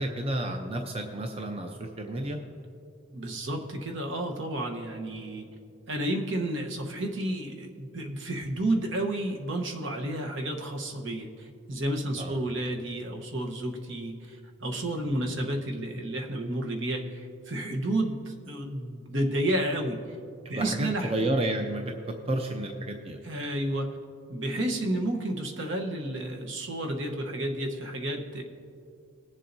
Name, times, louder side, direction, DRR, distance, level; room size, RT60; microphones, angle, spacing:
voice 1, 0.0-2.4 12.2-12.4 15.1-15.2 20.4-21.9 22.3-23.2, right 1 dB, 30° right, 3 dB, 0.6 m, -31 dB
voice 2, 3.1-5.5 5.9-20.0 20.5-21.1 23.2-24.0 24.3-28.4, right 1 dB, 65° right, 2 dB, 1.1 m, -31 dB
21.0 x 7.4 x 2.7 m, 2.5 s
head